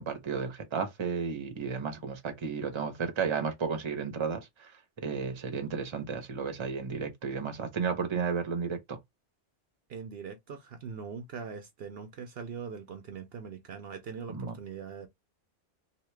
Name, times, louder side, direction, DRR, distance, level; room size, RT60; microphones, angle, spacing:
voice 1, 0.0-4.7 5.0-9.0 14.3-14.6, right 5 dB, 30° right, 0.7 m, -33 dB
voice 2, 9.9-15.1, right 6 dB, 60° right, 0.8 m, -41 dB
2.9 x 2.8 x 3.2 m
omnidirectional pair, 1.2 m